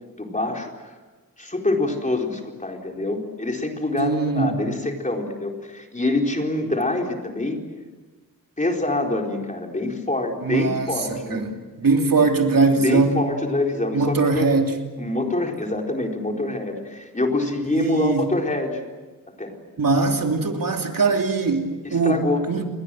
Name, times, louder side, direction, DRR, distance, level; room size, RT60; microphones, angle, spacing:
voice 1, 0.1-0.7 1.4-7.6 8.6-11.6 12.7-14.5 15.0-18.8 19.4-19.5 21.8-22.4, left 2 dB, 20° left, 1 dB, 4.2 m, -25 dB
voice 2, 4.0-4.6 10.4-11.4 11.8-13.2 13.9-14.8 17.7-18.3 19.8-22.7, right 3 dB, 75° right, 3 dB, 3.1 m, -21 dB
30.0 x 22.0 x 7.7 m, 1.3 s
wide cardioid pair, 115°, 34 cm